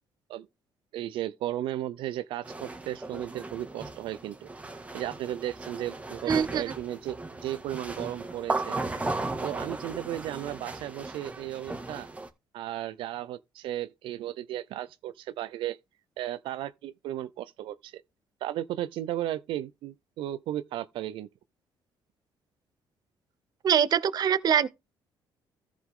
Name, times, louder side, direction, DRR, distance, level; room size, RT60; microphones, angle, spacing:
voice 1, 0.9-4.5 4.9-8.8 9.4-12.1 12.5-15.8 16.2-18.0 18.4-21.3, right 13 dB, 80° right, 0.5 m, -35 dB
sound 1, 2.4-12.3, right 2 dB, 15° right, 1.8 m, -36 dB
voice 2, 6.3-6.6 23.6-24.7, right 8 dB, 50° right, 0.7 m, -23 dB
14.0 x 5.1 x 3.7 m
cardioid pair, 105°, 9 cm